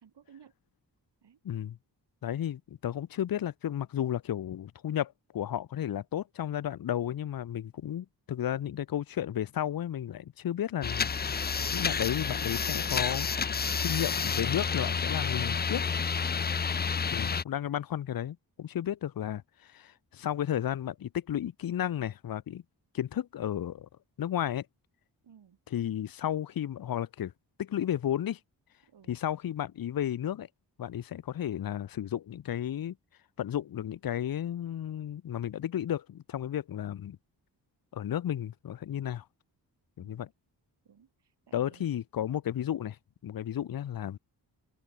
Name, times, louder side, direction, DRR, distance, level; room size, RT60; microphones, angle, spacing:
voice 1, 0.0-0.5 1.2-1.4 25.2-25.6 28.8-29.2 40.0-40.3 40.9-41.9, right 8 dB, 70° right, 3.9 m, -58 dB
voice 2, 1.4-1.8 2.2-11.1 11.7-15.8 17.1-22.6 22.9-23.9 24.2-24.7 25.7-27.3 27.6-28.4 29.1-30.5 30.8-33.0 33.4-37.2 37.9-39.2 40.0-40.3 41.5-43.0 43.2-44.2, left 10 dB, 55° left, 0.7 m, -33 dB
sound 1, 10.8-17.4, left 6 dB, 25° left, 0.5 m, -30 dB
open air
cardioid pair, 65°, 42 cm